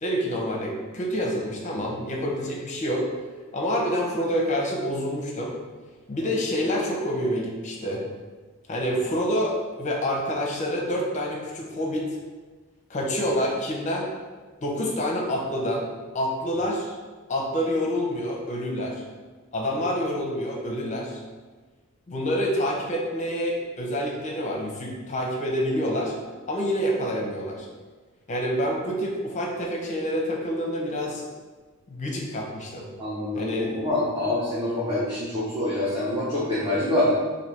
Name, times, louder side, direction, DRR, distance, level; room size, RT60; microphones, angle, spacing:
voice 1, 0.0-3.1 3.5-5.6 6.1-8.0 8.7-12.2 12.9-14.1 14.6-15.9 16.1-16.9 17.3-19.0 19.5-21.2 22.1-26.1 26.5-27.7 28.3-31.3 31.9-32.9 33.3-33.7, equal, 35° left, -1 dB, 0.7 m, -27 dB
voice 2, 33.0-33.4 33.7-37.1, left 1 dB, 20° right, -9 dB, 0.8 m, -25 dB
3.3 x 2.6 x 4.2 m, 1.3 s
head